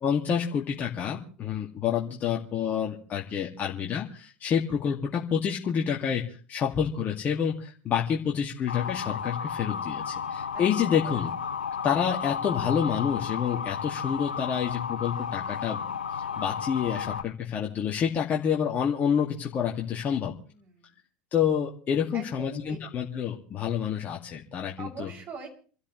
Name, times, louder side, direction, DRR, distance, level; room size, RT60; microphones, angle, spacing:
voice 1, 0.0-11.3 11.8-15.8 16.1-20.3 21.3-25.1, left 8 dB, 40° left, -1 dB, 2.3 m, -28 dB
Motor vehicle (road) / Siren, 8.7-17.2, left 7 dB, 85° left, 0.8 m, -33 dB
voice 2, 20.1-21.0 22.1-22.8 24.8-25.5, right 4 dB, 40° right, 1 dB, 7.0 m, -43 dB
28.0 x 13.0 x 3.3 m, 0.41 s
hypercardioid pair, 80°, 5 cm